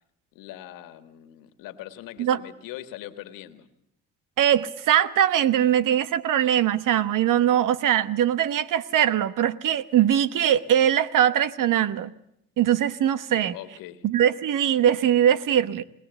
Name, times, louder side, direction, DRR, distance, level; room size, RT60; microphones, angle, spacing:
voice 1, 0.3-3.7 13.5-14.1, left 13 dB, 90° left, 11 dB, 1.7 m, -41 dB
voice 2, 4.4-12.1 12.6-13.6 14.0-15.8, right 10 dB, 70° right, 15 dB, 1.1 m, -21 dB
21.0 x 20.0 x 8.2 m, 0.75 s
supercardioid pair, 65°, 32 cm